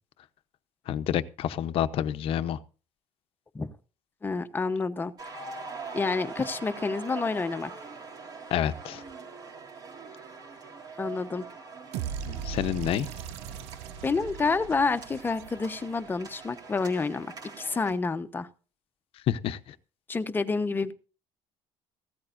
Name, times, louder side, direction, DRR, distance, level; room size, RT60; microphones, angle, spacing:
voice 1, 0.9-2.6 8.5-9.0 12.2-13.1 19.3-19.7, left 10 dB, 60° left, 13 dB, 0.9 m, -28 dB
voice 2, 4.2-5.1 5.9-7.7 11.0-11.5 14.0-18.5 20.1-20.9, left 4 dB, 20° left, 10 dB, 1.0 m, -29 dB
sound 1, 5.2-17.9, right 4 dB, 40° right, 3.9 m, -43 dB
sound 2, 11.9-16.0, right 8 dB, 85° right, 0.7 m, -38 dB
16.0 x 13.5 x 2.6 m, 0.35 s
cardioid pair, 125°, 11 cm